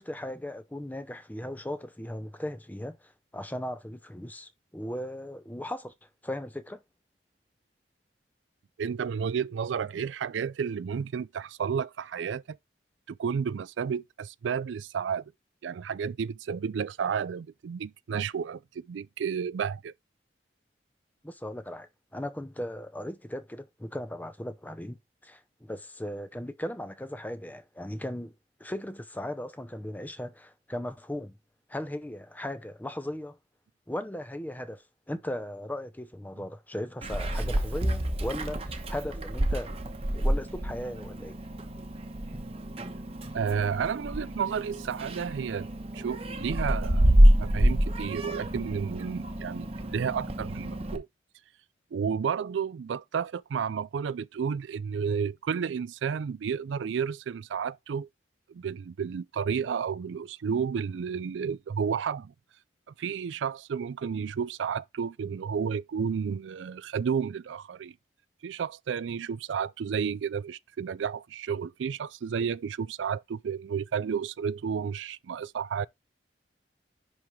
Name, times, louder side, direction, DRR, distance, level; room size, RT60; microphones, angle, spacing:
voice 1, 0.0-5.9 6.2-6.8 21.2-28.3 28.6-31.4 31.7-33.4 33.9-39.8 40.1-41.4, left 1 dB, 10° left, 0.7 m, -37 dB
voice 2, 8.8-12.6 13.1-15.2 15.6-19.9 43.3-45.7 45.9-47.0 47.4-51.1 51.9-58.1 58.5-62.3 63.0-67.9 68.4-75.9, right 6 dB, 90° right, 0.4 m, -31 dB
Meow, 37.0-51.0, equal, 35° right, 1.0 m, -27 dB
10.5 x 3.8 x 3.2 m
head